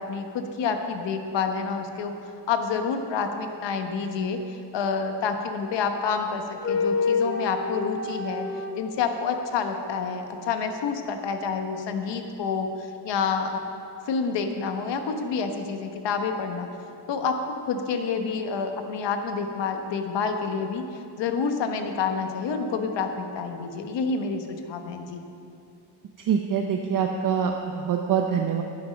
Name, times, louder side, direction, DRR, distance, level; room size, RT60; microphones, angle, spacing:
voice 1, 0.0-8.5 8.8-13.6 14.1-16.7 17.1-25.2, left 5 dB, 75° left, 5 dB, 1.2 m, -28 dB
sound 1, 5.6-5.7 6.6-8.8, left 4 dB, 30° left, 0.8 m, -27 dB
voice 2, 26.3-28.6, right 7 dB, 45° right, 3 dB, 0.7 m, -25 dB
11.5 x 10.5 x 5.2 m, 2.6 s
cardioid pair, 145°, 43 cm